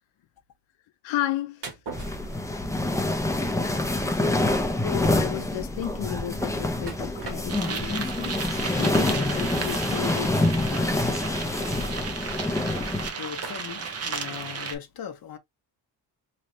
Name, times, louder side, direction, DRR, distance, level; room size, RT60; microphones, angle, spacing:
voice 1, 1.0-1.7 4.8-8.4 8.8-10.4 10.7-10.9, left 13 dB, 90° left, 0.6 m, -33 dB
sound 1, 1.6-2.9 3.3-3.5 3.9-4.0 4.4-4.5 4.7-4.9 6.9-7.9 8.6-8.7 9.8-10.0 10.8-10.9 11.2-11.4 13.4-14.1, right 4 dB, 65° right, 1.5 m, -41 dB
sound 2, 1.9-13.1, left 2 dB, 5° left, 0.6 m, -26 dB
voice 2, 4.2-4.6 13.2-15.4, left 8 dB, 50° left, 0.9 m, -38 dB
sound 3, 7.5-14.7, right 5 dB, 35° right, 0.7 m, -34 dB
3.3 x 3.1 x 2.6 m
wide cardioid pair, 135°, 45 cm